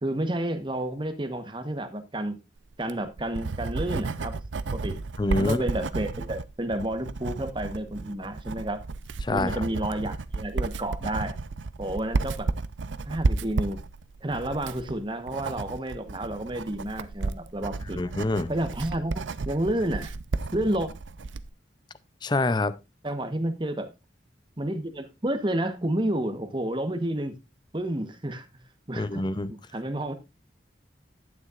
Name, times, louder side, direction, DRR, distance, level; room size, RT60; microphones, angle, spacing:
voice 1, 0.0-2.4 2.8-4.4 4.7-5.0 5.4-8.8 9.3-11.4 11.8-12.5 13.1-13.8 14.2-18.0 18.5-20.1 20.5-20.9 23.0-23.9 24.6-27.3 27.7-28.6 28.9-30.1, right 1 dB, 25° right, 1.1 m, -30 dB
Writing, 2.7-21.5, right 3 dB, 80° right, 0.6 m, -33 dB
voice 2, 5.2-5.6 9.2-9.6 18.0-18.5 22.2-22.8 29.0-29.5, left 2 dB, 25° left, 0.5 m, -26 dB
11.5 x 9.4 x 2.4 m
head